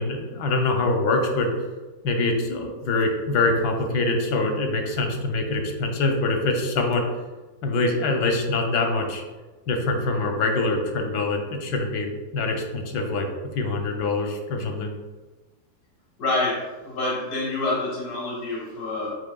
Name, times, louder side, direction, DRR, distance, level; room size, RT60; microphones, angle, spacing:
voice 1, 0.0-1.5 2.0-7.0 7.6-9.2 9.7-14.9, left 2 dB, 90° left, 3 dB, 1.3 m, -24 dB
voice 2, 16.2-19.1, left 2 dB, 75° left, -4 dB, 1.6 m, -27 dB
7.5 x 3.1 x 2.2 m, 1.2 s
omnidirectional pair, 1.7 m